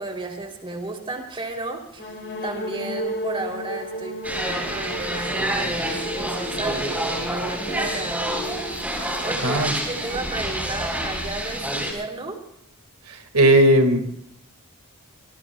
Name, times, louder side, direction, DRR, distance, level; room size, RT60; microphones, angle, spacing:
voice 1, 0.0-8.7 9.2-12.4, right 2 dB, 25° right, 2 dB, 3.0 m, -33 dB
sound 1, 2.0-9.7, equal, 50° left, 3.0 m, -34 dB
sound 2, 4.2-11.9, right 1 dB, 5° right, 4.2 m, -28 dB
voice 2, 9.4-9.7 13.1-14.1, right 1 dB, 80° right, 7 dB, 1.7 m, -17 dB
25.0 x 23.0 x 2.3 m, 0.72 s
head